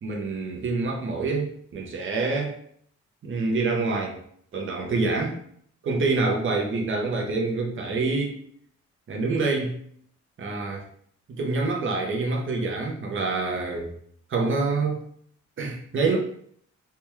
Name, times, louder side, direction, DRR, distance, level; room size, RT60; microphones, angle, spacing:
voice 1, 0.0-2.6 3.2-4.2 4.5-5.4 5.8-8.4 9.1-9.8 10.4-10.8 11.3-13.9 14.3-15.0 15.6-16.2, right 3 dB, 40° right, 0 dB, 0.6 m, -26 dB
3.4 x 2.2 x 3.0 m, 0.64 s
wide cardioid pair, 160°, 30 cm